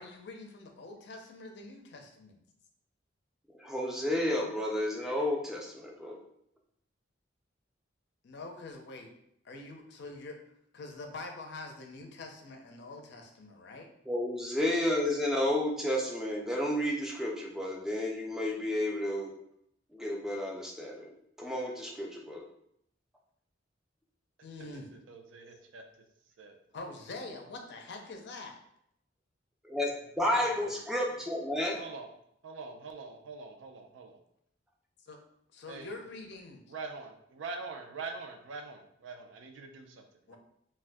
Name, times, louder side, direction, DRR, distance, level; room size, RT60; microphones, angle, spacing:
voice 1, 0.0-2.4 8.2-9.1 9.4-10.4 10.7-13.9 24.4-25.0 26.7-28.6 35.0-35.2 35.5-36.6 40.3-40.4, left 2 dB, 65° left, 3 dB, 0.5 m, -45 dB
voice 2, 3.6-6.2 14.1-19.3 19.9-21.1 21.4-22.5 29.6-31.8, left 1 dB, 5° right, -1 dB, 0.4 m, -31 dB
voice 3, 24.6-25.8 26.4-26.5 30.2-30.7 31.8-32.1 32.4-34.2 35.7-36.0 36.7-40.4, right 4 dB, 80° right, 5 dB, 0.4 m, -44 dB
2.5 x 2.2 x 3.4 m, 0.73 s
head